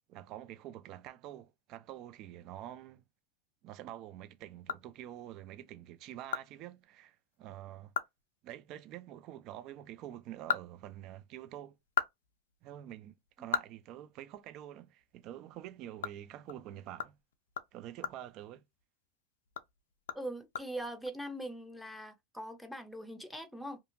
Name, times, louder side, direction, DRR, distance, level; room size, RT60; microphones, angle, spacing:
voice 1, 0.1-3.0 3.6-7.9 8.4-11.8 12.6-17.2 17.7-18.6, right 12 dB, 50° right, 0.4 m, -47 dB
sound 1, 4.3-5.4 5.8-5.9 6.3-6.5 6.8-6.9 7.3-7.4 7.8-8.2 8.5-8.6 10.1-11.4 11.7-14.7 15.0-15.1 15.5-19.1 19.4-21.1, left 8 dB, 85° left, 0.3 m, -39 dB
voice 2, 20.1-23.8, right 1 dB, ahead, 0.6 m, -42 dB
2.7 x 2.4 x 2.6 m
hypercardioid pair, 100°, 0 cm